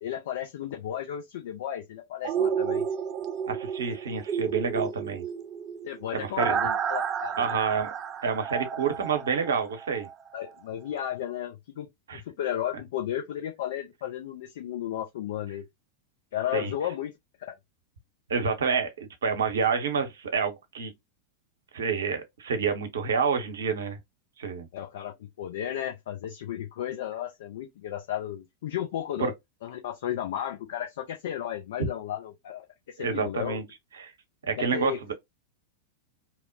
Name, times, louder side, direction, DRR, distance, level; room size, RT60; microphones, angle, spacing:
voice 1, 0.0-2.8 5.8-7.6 10.3-15.6 16.3-17.1 24.7-29.3 29.6-33.6 34.6-35.0, left 11 dB, 60° left, 0.5 m, -34 dB
sound 1, 2.2-10.1 10.5-10.6, right 7 dB, 30° right, 0.4 m, -31 dB
voice 2, 3.5-5.2 6.1-6.6 7.4-7.9 8.2-10.1 12.1-12.2 16.5-16.7 18.3-20.9 21.7-24.0 24.4-24.7 29.2-29.3 31.8-31.9 33.0-33.6 34.0-34.1 34.4-35.1, right 5 dB, 70° right, 0.7 m, -28 dB
2.9 x 2.1 x 2.5 m
figure-of-eight pair, 90°, 0 cm